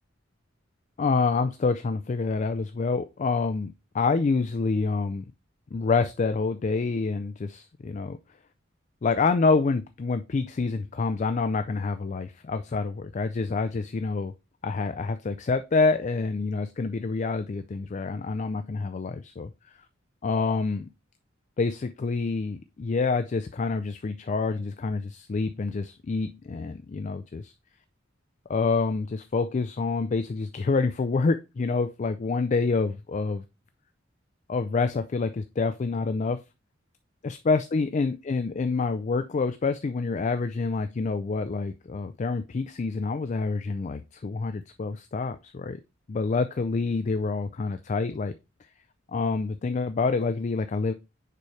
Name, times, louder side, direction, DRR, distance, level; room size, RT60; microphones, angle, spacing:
voice 1, 1.0-5.3 5.7-8.2 9.0-14.3 14.6-19.5 20.2-20.9 21.6-27.5 28.5-33.4 34.5-36.4 37.2-45.8 46.1-48.3 49.1-50.9, left 4 dB, 40° left, 10 dB, 0.4 m, -27 dB
6.8 x 4.8 x 3.2 m, 0.26 s
head